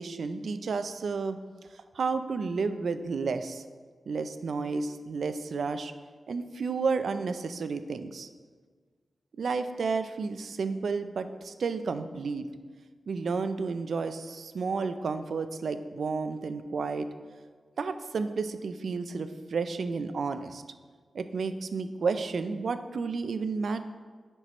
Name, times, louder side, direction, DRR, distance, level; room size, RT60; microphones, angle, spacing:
voice 1, 0.0-1.4 1.9-3.6 4.1-5.9 6.3-8.3 9.4-12.4 13.1-17.1 17.8-20.6 21.1-23.9, right 4 dB, 70° right, 10 dB, 0.4 m, -31 dB
9.8 x 4.5 x 3.0 m, 1.5 s
wide cardioid pair, 125°, 0 cm